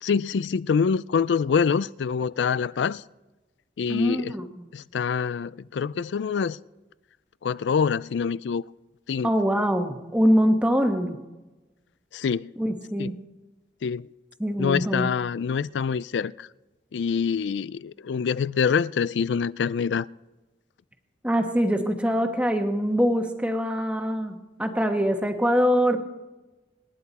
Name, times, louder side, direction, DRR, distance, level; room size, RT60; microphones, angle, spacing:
voice 1, 0.0-3.0 3.8-4.4 4.7-6.6 7.4-8.6 9.1-9.3 12.1-12.5 13.0-13.1 13.8-14.1 14.6-16.5 16.9-20.1, left 6 dB, 80° left, 0.4 m, -25 dB
voice 2, 3.9-4.7 9.2-11.2 12.6-13.1 14.4-15.1 21.2-26.0, equal, 5° right, 1.3 m, -23 dB
27.0 x 10.5 x 4.1 m
head